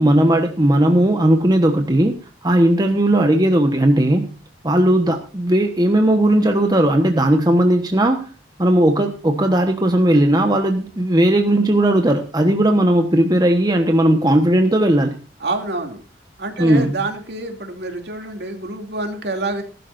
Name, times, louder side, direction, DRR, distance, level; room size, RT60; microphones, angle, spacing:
voice 1, 0.0-2.1 2.4-4.3 4.6-8.2 8.6-15.2 16.6-16.9, right 1 dB, 20° right, 4 dB, 1.2 m, -16 dB
voice 2, 15.4-16.0 16.4-19.6, right 2 dB, 65° right, 4 dB, 2.8 m, -27 dB
19.0 x 12.0 x 2.6 m, 0.36 s
head